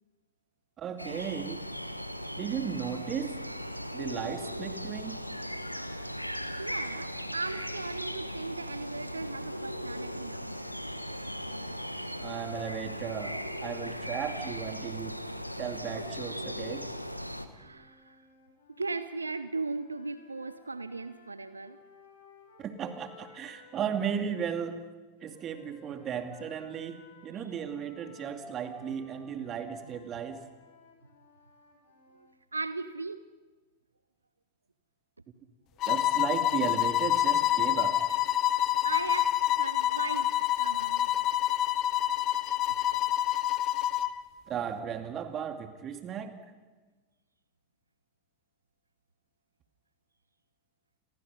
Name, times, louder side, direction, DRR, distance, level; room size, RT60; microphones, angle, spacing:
voice 1, 0.8-1.6 2.4-3.4 3.9-5.2 12.2-15.2 15.6-16.9 22.6-24.8 25.2-30.5 35.9-38.0 44.5-46.3, right 8 dB, 30° right, 7 dB, 2.3 m, -35 dB
sound 1, 1.0-17.5, equal, 90° left, 1.3 m, -38 dB
voice 2, 6.6-10.6 17.5-18.2 18.8-21.8 29.9-30.0 32.1-33.2 38.8-40.3 40.6-41.1, right 3 dB, 80° right, 14 dB, 0.8 m, -37 dB
sound 2, 17.5-24.5 25.2-32.4, left 3 dB, 65° left, 5.4 m, -57 dB
sound 3, 35.8-44.2, left 13 dB, 35° left, 1.2 m, -27 dB
29.5 x 23.0 x 5.5 m, 1.3 s
figure-of-eight pair, 90°, 0 cm